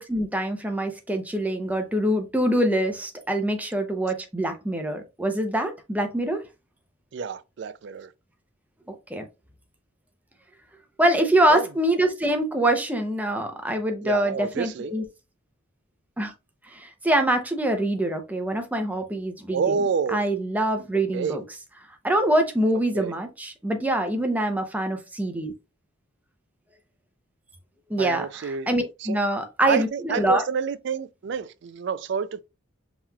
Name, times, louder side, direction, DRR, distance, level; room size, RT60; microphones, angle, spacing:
voice 1, 0.0-6.4 8.9-9.3 11.0-15.0 16.2-16.3 16.7-19.7 20.1-21.4 22.0-25.5 27.9-30.4, right 1 dB, 5° right, 0.6 m, -24 dB
voice 2, 7.1-8.1 11.5-11.7 14.0-14.9 19.5-20.3 21.1-21.4 22.7-23.1 28.0-28.7 29.0-29.2 29.7-32.5, right 6 dB, 55° right, 0.3 m, -28 dB
5.5 x 3.0 x 2.3 m
head